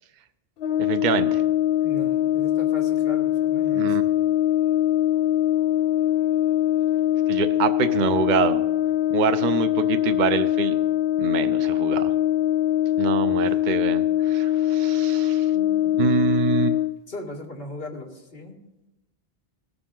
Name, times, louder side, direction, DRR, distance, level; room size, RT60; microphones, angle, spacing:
Brass instrument, 0.6-17.0, left 12 dB, 80° left, 0.8 m, -22 dB
voice 1, 0.8-1.4 3.7-4.0 7.3-8.6 9.1-10.8 11.2-12.1 13.0-15.5 16.0-16.8, right 7 dB, 55° right, 9 dB, 0.7 m, -25 dB
voice 2, 1.8-4.0 15.5-15.8 17.1-18.6, left 1 dB, 65° left, -1 dB, 2.1 m, -38 dB
18.0 x 7.0 x 3.8 m, 1.0 s
omnidirectional pair, 1.0 m